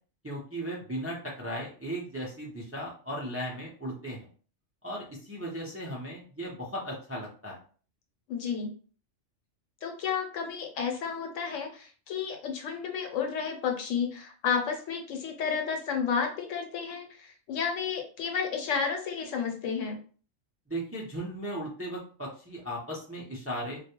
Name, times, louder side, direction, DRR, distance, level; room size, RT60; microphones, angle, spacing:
voice 1, 0.2-4.3 4.8-7.6 20.7-23.8, equal, 25° right, -4 dB, 0.3 m, -36 dB
voice 2, 8.3-8.7 9.8-20.0, left 6 dB, 90° left, 3 dB, 1.0 m, -31 dB
2.3 x 2.1 x 2.9 m, 0.40 s
omnidirectional pair, 1.3 m